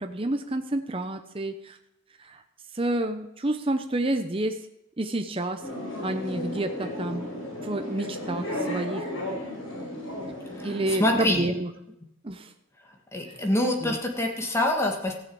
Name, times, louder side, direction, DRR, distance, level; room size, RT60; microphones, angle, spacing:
voice 1, 0.0-1.8 2.2-2.4 2.7-4.6 5.0-5.6 6.0-7.2 7.6-9.1 10.6-11.7 12.2-12.5 13.8-14.0, right 1 dB, 25° right, 7 dB, 0.7 m, -29 dB
sound 1, 5.6-11.2, left 1 dB, 75° left, 6.0 m, -34 dB
voice 2, 10.6-11.5 13.1-15.1, left 1 dB, 15° left, 2 dB, 1.7 m, -26 dB
15.0 x 6.6 x 8.6 m, 0.82 s
head